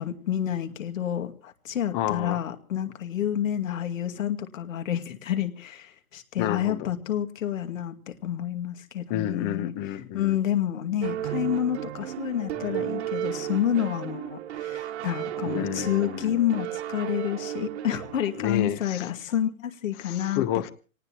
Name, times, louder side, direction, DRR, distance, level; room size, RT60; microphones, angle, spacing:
voice 1, 0.0-9.7 10.1-20.4, left 10 dB, 65° left, 6 dB, 2.3 m, -29 dB
voice 2, 1.9-2.4 6.4-6.9 9.1-10.4 15.4-16.4 18.4-19.1 20.0-20.7, left 12 dB, 25° left, 16 dB, 1.0 m, -30 dB
sound 1, 11.0-18.5, right 12 dB, 50° right, 1.8 m, -34 dB
26.5 x 18.5 x 3.0 m, 0.36 s
hypercardioid pair, 145°, 42 cm